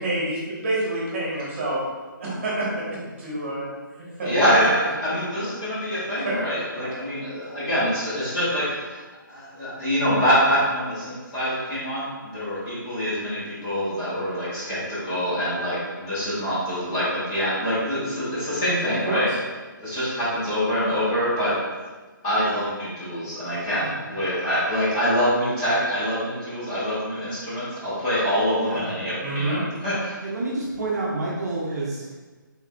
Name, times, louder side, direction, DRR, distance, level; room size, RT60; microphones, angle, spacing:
voice 1, 0.0-1.8 2.2-2.8 3.2-3.7 4.2-4.4 6.2-6.4 6.8-6.9 19.0-19.4 29.2-29.6, right 1 dB, 35° right, -6 dB, 1.4 m, -27 dB
voice 2, 4.2-19.3 19.8-21.5 22.2-30.1, equal, 15° left, -11 dB, 1.2 m, -25 dB
voice 3, 28.5-28.9 30.2-32.1, right 2 dB, 50° right, -4 dB, 0.8 m, -29 dB
4.7 x 3.6 x 2.4 m, 1.3 s
hypercardioid pair, 170°, 11 cm